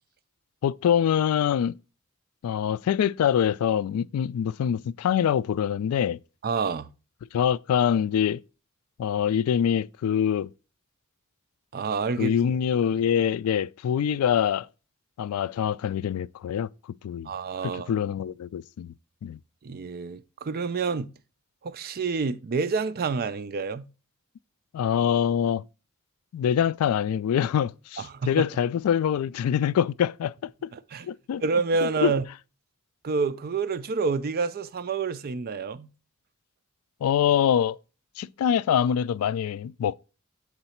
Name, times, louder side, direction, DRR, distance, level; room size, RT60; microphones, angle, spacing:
voice 1, 0.6-1.8 2.4-6.2 7.3-8.4 9.0-10.5 12.2-14.7 15.2-16.7 17.0-17.3 17.6-18.9 19.2-19.4 24.7-25.6 26.3-30.3 31.0-31.4 31.8-32.1 37.0-37.8 38.2-39.9, left 8 dB, 80° left, 0.3 m, -24 dB
voice 2, 6.4-6.9 11.7-12.6 17.3-17.9 19.6-21.1 21.6-23.9 28.0-28.5 30.7-31.1 31.4-32.2 33.0-35.9, right 4 dB, 45° right, 0.4 m, -28 dB
7.9 x 3.9 x 4.3 m
head